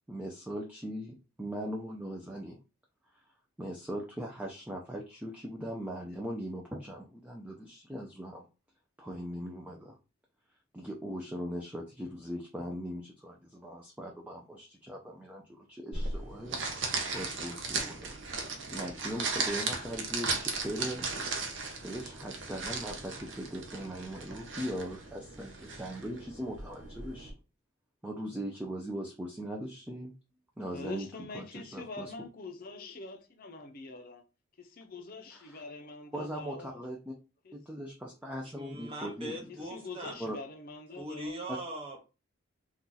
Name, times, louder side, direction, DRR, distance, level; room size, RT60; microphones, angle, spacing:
voice 1, 0.1-2.6 3.6-8.5 9.0-10.0 10.7-15.4 15.7-16.6 17.1-18.2 18.7-21.1 21.8-27.3 28.0-30.1 30.6-31.1 31.3-32.1 35.3-35.6 36.1-37.1 37.5-39.4 40.2-40.4, equal, 5° right, 0.4 m, -39 dB
sound 1, 15.9-27.3, right 4 dB, 65° right, 0.7 m, -36 dB
voice 2, 30.7-34.2 34.6-36.8 37.4-37.5 39.7-41.5, left 3 dB, 45° left, 0.6 m, -44 dB
voice 3, 38.4-40.2 40.9-42.0, right 1 dB, 30° right, 0.8 m, -40 dB
2.7 x 2.4 x 3.8 m
head